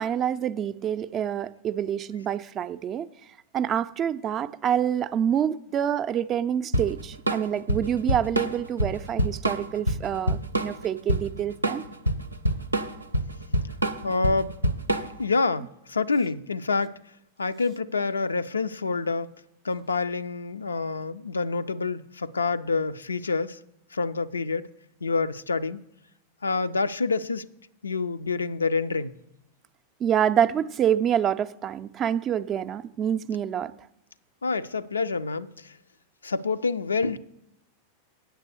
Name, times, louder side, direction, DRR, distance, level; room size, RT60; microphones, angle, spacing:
voice 1, 0.0-3.1 3.5-11.8 30.0-33.7, right 9 dB, 30° right, 0.4 m, -27 dB
Drum kit / Drum, 6.7-15.3, right 1 dB, 85° right, 0.6 m, -26 dB
voice 2, 14.0-14.6 15.2-17.0 17.4-19.3 19.6-23.6 23.9-24.6 25.0-25.8 26.4-27.5 27.8-29.1 34.4-35.7 36.2-37.2, left 4 dB, 75° left, 0.4 m, -27 dB
8.9 x 6.6 x 6.8 m
figure-of-eight pair, 90°, 0 cm